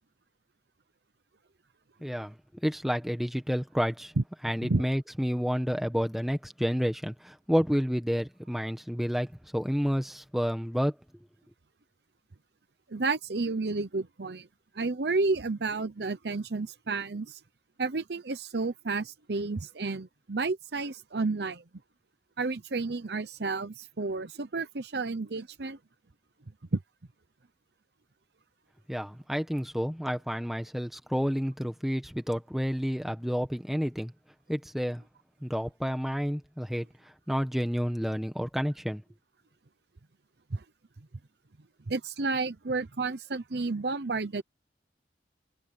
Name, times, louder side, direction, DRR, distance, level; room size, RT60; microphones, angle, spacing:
voice 1, 2.0-2.4 2.6-4.1 4.4-10.9 28.9-34.1 34.5-35.0 35.4-36.9 37.3-39.0, equal, ahead, 1.5 m, -30 dB
voice 2, 12.9-14.5 14.7-17.4 17.8-21.6 22.4-25.8 26.7-26.8 40.5-40.6 41.9-44.4, right 3 dB, 70° right, 0.8 m, -31 dB
head